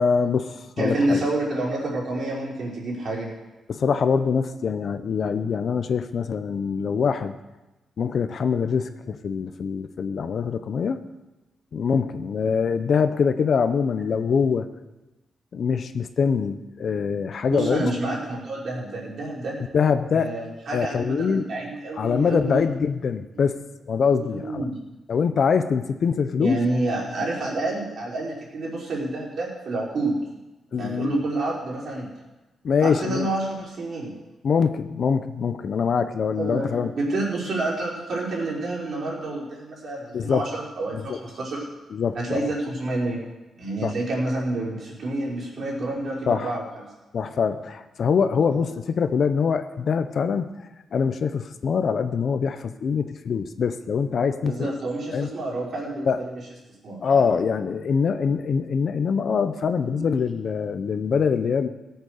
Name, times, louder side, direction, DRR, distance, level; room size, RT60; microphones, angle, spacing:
voice 1, 0.0-1.3 3.7-7.3 8.0-11.0 11.7-14.7 15.5-17.9 19.7-20.3 20.7-21.5 22.0-23.6 23.9-24.6 25.1-26.6 30.7-31.2 32.6-33.3 34.4-36.9 40.1-40.5 40.9-41.2 41.9-42.5 43.8-43.9 46.3-46.6 47.1-50.5 50.9-54.7 55.1-55.3 56.0-56.2 57.0-61.7, left 6 dB, 50° left, 10 dB, 0.8 m, -24 dB
voice 2, 0.8-3.3 17.5-19.6 20.1-22.7 24.3-24.8 26.4-30.2 30.8-32.1 32.8-34.1 36.4-41.6 42.1-43.2 43.6-46.6 48.5-48.7 54.4-56.4 56.8-57.2 59.9-60.0, right 2 dB, 50° right, -4 dB, 4.7 m, -28 dB
17.5 x 8.2 x 6.6 m, 1.1 s
wide cardioid pair, 155°, 0 cm